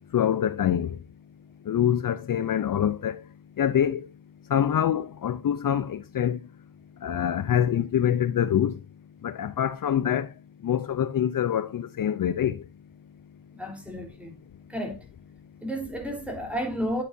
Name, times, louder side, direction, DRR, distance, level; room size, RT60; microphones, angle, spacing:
voice 1, 0.1-1.0 1.7-3.1 3.6-4.0 4.5-6.4 7.0-8.8 9.2-10.3 10.6-12.6, left 9 dB, 60° left, 0.7 m, -25 dB
voice 2, 13.5-14.3 14.7-15.0 15.6-17.0, equal, 5° right, 3.6 m, -32 dB
9.5 x 8.3 x 2.7 m
cardioid pair, 95°, 38 cm